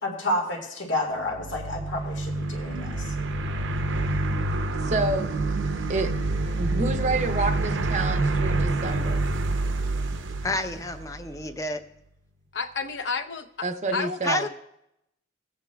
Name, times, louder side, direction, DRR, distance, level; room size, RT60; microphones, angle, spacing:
voice 1, 0.0-3.1, left 1 dB, 90° left, 2 dB, 2.1 m, -30 dB
sound 1, 1.2-11.5, right 2 dB, 85° right, 0.7 m, -27 dB
voice 2, 4.8-5.3 5.9-6.1 6.6-9.2 13.6-14.5, right 2 dB, 35° right, 6 dB, 0.6 m, -28 dB
voice 3, 10.4-11.8 14.2-14.5, left 2 dB, 15° left, 8 dB, 0.5 m, -29 dB
voice 4, 12.5-13.7 13.9-14.5, left 5 dB, 70° left, 7 dB, 0.7 m, -31 dB
19.5 x 8.5 x 2.3 m, 0.80 s
head